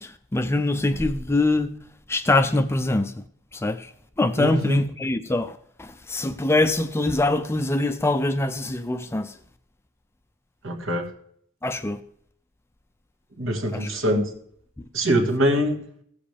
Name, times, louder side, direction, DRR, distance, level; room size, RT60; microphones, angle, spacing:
voice 1, 0.0-1.7 2.1-3.2 3.5-3.9 4.2-9.3 11.6-12.0 13.7-13.9, left 2 dB, 10° left, 0.4 m, -24 dB
voice 2, 4.4-4.8 10.6-11.1 13.4-14.3 14.9-15.9, equal, 70° right, 1.8 m, -23 dB
16.5 x 7.5 x 3.4 m
head